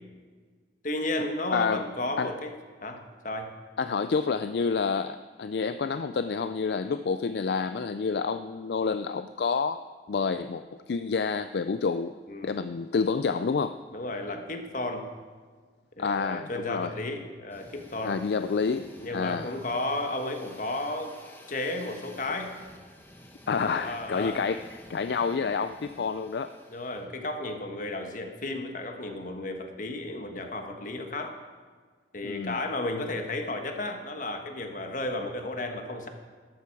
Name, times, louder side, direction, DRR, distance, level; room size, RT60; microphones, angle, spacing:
voice 1, 0.8-2.5 2.8-3.5 12.3-12.6 13.9-15.1 16.0-18.2 19.0-21.1 21.5-22.5 23.7-24.4 26.7-31.4 32.1-36.1, left 2 dB, 45° left, 5 dB, 1.4 m, -33 dB
voice 2, 1.5-1.8 2.2-2.3 3.8-9.8 10.1-12.1 12.4-13.8 16.0-16.9 18.0-19.5 23.5-26.5 32.2-32.6, left 5 dB, 65° left, 10 dB, 0.4 m, -28 dB
sound 1, 17.5-27.1, left 1 dB, 10° left, 1.2 m, -52 dB
13.0 x 13.0 x 4.8 m, 1.5 s
head